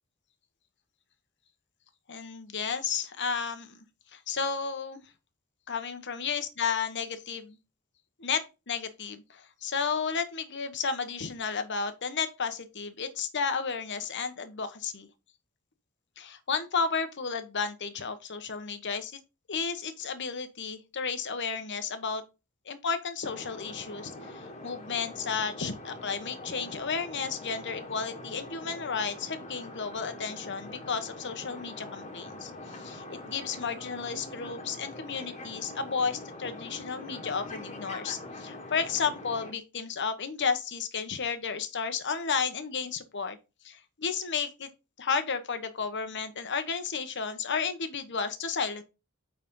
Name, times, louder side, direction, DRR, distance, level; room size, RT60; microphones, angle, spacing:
voice 1, 2.1-3.8 4.1-5.0 5.7-7.6 8.2-15.1 16.2-19.2 19.5-22.2 22.7-43.4 43.6-44.7 45.0-48.8, left 5 dB, 55° left, 1.1 m, -33 dB
sound 1, 23.2-39.5, left 2 dB, 30° left, 1.6 m, -43 dB
9.2 x 4.2 x 3.7 m
head